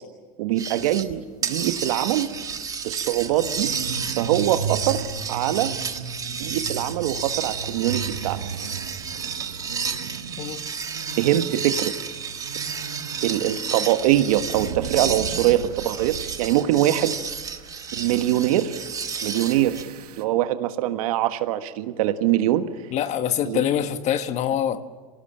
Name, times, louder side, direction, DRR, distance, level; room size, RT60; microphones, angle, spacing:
voice 1, 0.4-2.3 2.8-3.7 4.2-5.7 6.4-8.4 11.2-11.9 13.2-17.2 17.9-18.8 19.2-19.9 20.2-22.6 23.4-23.6, right 13 dB, 70° right, 9 dB, 1.5 m, -23 dB
sound 1, 0.6-1.1 1.4-19.8, right 6 dB, 20° right, 1.5 m, -31 dB
sound 2, 2.3-20.2, right 7 dB, 90° right, 1.6 m, -37 dB
voice 2, 22.9-24.8, left 10 dB, 35° left, 10 dB, 1.4 m, -24 dB
26.0 x 18.5 x 8.9 m, 1.4 s
supercardioid pair, 125°, 19 cm